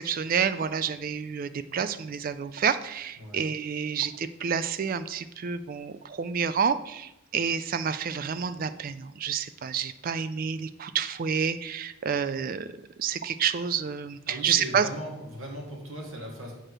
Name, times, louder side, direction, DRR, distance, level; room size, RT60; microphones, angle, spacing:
voice 1, 0.0-12.7 13.0-14.9, right 7 dB, 40° right, 13 dB, 0.3 m, -29 dB
voice 2, 14.3-16.5, right 1 dB, 70° right, -1 dB, 1.9 m, -38 dB
7.3 x 4.6 x 4.8 m, 0.91 s
head